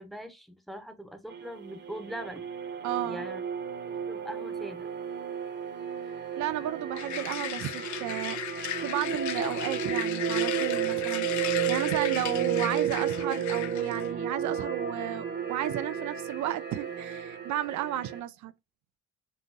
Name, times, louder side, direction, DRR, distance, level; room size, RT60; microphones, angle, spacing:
voice 1, 0.0-2.5 3.1-3.4 4.1-4.9, equal, ahead, 0.8 m, -41 dB
sound 1, 1.3-18.2, right 8 dB, 35° right, 0.9 m, -32 dB
voice 2, 2.8-3.3 6.4-8.4 8.8-18.5, right 12 dB, 70° right, 0.5 m, -33 dB
sound 2, 7.0-14.1, left 11 dB, 70° left, 0.6 m, -36 dB
5.5 x 2.6 x 2.7 m
cardioid pair, 90°, 30 cm